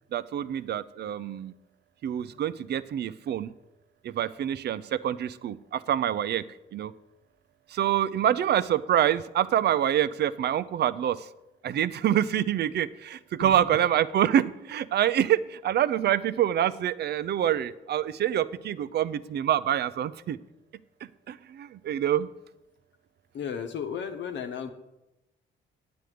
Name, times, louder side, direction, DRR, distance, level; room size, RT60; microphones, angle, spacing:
voice 1, 0.1-1.5 2.0-3.5 4.0-6.4 6.7-6.9 7.7-11.3 11.6-20.4 21.3-22.3, right 10 dB, 55° right, 16 dB, 0.5 m, -26 dB
voice 2, 23.3-24.7, left 7 dB, 65° left, 7 dB, 1.1 m, -34 dB
9.2 x 7.7 x 5.0 m, 0.96 s
cardioid pair, 90°, 20 cm